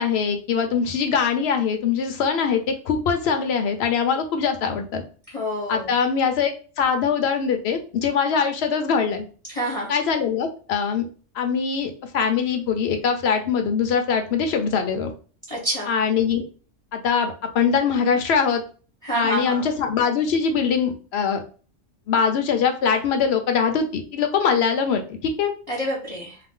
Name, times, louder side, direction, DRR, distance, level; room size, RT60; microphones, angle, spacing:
voice 1, 0.0-5.0 5.7-6.5 6.8-9.2 9.9-11.1 11.3-15.1 15.9-16.4 16.9-18.6 19.1-21.4 22.1-25.5, left 6 dB, 65° left, 6 dB, 0.8 m, -22 dB
voice 2, 5.3-5.9 9.5-9.9 15.5-15.9 19.0-19.7 25.7-26.4, right 1 dB, 35° left, -5 dB, 0.7 m, -27 dB
2.5 x 2.1 x 3.5 m, 0.38 s
omnidirectional pair, 1.3 m